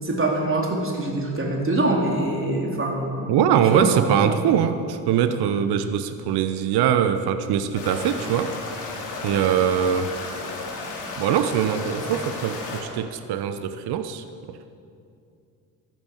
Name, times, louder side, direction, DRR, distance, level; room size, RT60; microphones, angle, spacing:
voice 1, 0.0-3.3 3.7-4.4 12.0-12.1, right 2 dB, 25° right, -1 dB, 3.9 m, -24 dB
voice 2, 3.3-8.8 9.2-10.1 11.2-14.2, right 9 dB, 55° right, 10 dB, 1.0 m, -22 dB
sound 1, 7.7-12.8, left 3 dB, 80° left, 2.8 m, -33 dB
14.5 x 12.5 x 7.3 m, 2.5 s
figure-of-eight pair, 50°, 46 cm